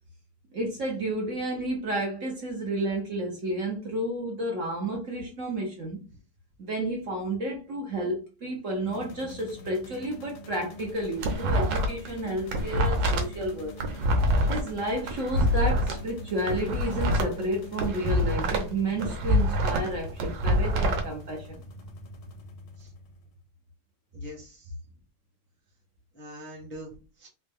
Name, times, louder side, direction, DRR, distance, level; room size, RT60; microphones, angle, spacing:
voice 1, 0.5-6.0 6.6-13.8 14.5-21.6, right 1 dB, 55° right, 0.9 m, -31 dB
sound 1, 8.9-23.4, left 1 dB, 80° left, 1.6 m, -45 dB
sound 2, 10.8-12.1 12.4-15.9 16.4-18.7 19.0-21.0, equal, 70° right, 1.4 m, -25 dB
voice 2, 24.1-24.7 26.1-27.3, equal, 15° left, 0.5 m, -44 dB
4.1 x 2.2 x 3.4 m
omnidirectional pair, 2.2 m